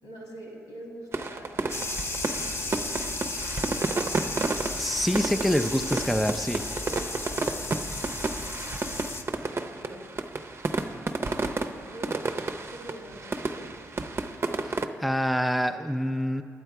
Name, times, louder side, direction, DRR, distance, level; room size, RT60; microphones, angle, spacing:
voice 1, 0.0-3.2 9.5-10.1 11.9-12.4 12.7-13.7, right 1 dB, 85° left, -2 dB, 2.4 m, -45 dB
sound 1, 1.1-14.8, right 3 dB, 40° right, 0.7 m, -31 dB
sound 2, 1.7-9.2, left 2 dB, 45° left, 1.0 m, -34 dB
voice 2, 4.8-6.6 14.6-16.4, equal, ahead, 7 dB, 0.5 m, -26 dB
11.5 x 7.9 x 4.7 m, 2.3 s
hypercardioid pair, 45°, 6 cm